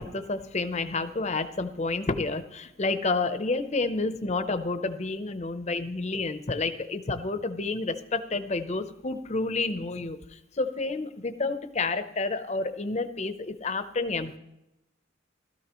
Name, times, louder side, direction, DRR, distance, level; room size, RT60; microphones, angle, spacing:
voice 1, 0.0-14.4, left 3 dB, 35° left, 10 dB, 0.7 m, -30 dB
16.5 x 13.0 x 3.0 m, 0.88 s
head